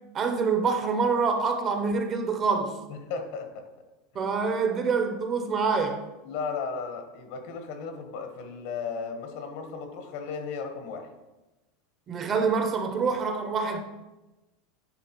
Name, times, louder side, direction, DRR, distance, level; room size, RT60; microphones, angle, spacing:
voice 1, 0.1-2.8 4.1-6.0 12.1-13.8, right 5 dB, 30° right, 0.6 m, -26 dB
voice 2, 2.9-3.6 6.2-11.1, left 5 dB, 65° left, 1.0 m, -35 dB
9.7 x 3.7 x 2.9 m
supercardioid pair, 145°, 0 cm